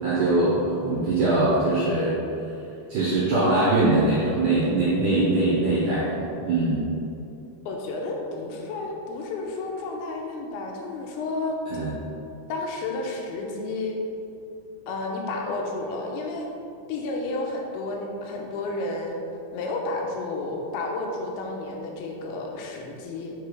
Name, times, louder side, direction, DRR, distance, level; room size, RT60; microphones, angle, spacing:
voice 1, 0.0-2.1 2.9-6.8 11.7-11.9, right 2 dB, 70° right, -9 dB, 1.9 m, -22 dB
voice 2, 7.7-11.6 12.5-14.0 14.9-16.5 16.9-19.2 19.5-23.3, left 2 dB, 75° left, 0 dB, 2.5 m, -31 dB
6.7 x 5.3 x 3.3 m, 2.7 s
omnidirectional pair, 4.9 m